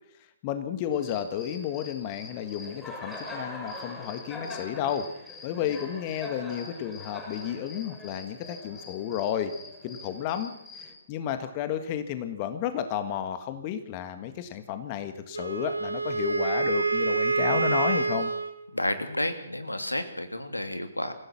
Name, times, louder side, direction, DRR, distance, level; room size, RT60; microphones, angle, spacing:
voice 1, 0.4-5.1 5.4-9.5 9.8-18.3, left 9 dB, 30° left, 9 dB, 1.7 m, -32 dB
Cricket, 0.9-10.9, left 2 dB, 5° left, 6.0 m, -42 dB
Wind instrument woodwind instrument, 15.3-18.6, right 4 dB, 80° right, 2.3 m, -27 dB
voice 2, 18.7-21.1, left 1 dB, 85° left, 8 dB, 2.8 m, -31 dB
26.5 x 16.0 x 6.2 m, 0.74 s
figure-of-eight pair, 130°, 0 cm